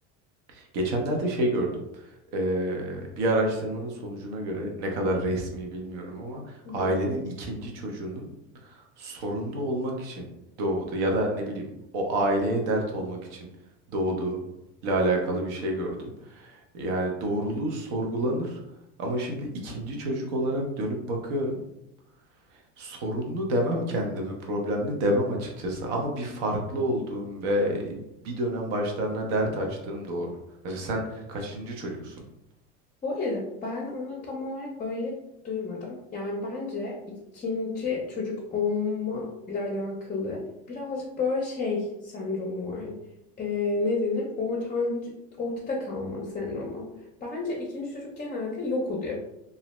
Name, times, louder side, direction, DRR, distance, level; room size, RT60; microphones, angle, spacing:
voice 1, 0.5-1.7 1.9-8.3 8.6-10.2 10.6-13.5 13.9-14.4 14.8-18.6 19.0-21.6 22.5-30.3 30.6-32.2, right 1 dB, 70° right, 1 dB, 0.9 m, -29 dB
voice 2, 33.0-35.1 35.4-40.4 40.7-43.0 43.4-45.1 45.4-46.9 47.2-49.1, left 3 dB, 25° left, -2 dB, 0.6 m, -31 dB
2.5 x 2.0 x 3.0 m, 0.86 s
supercardioid pair, 105°, 35 cm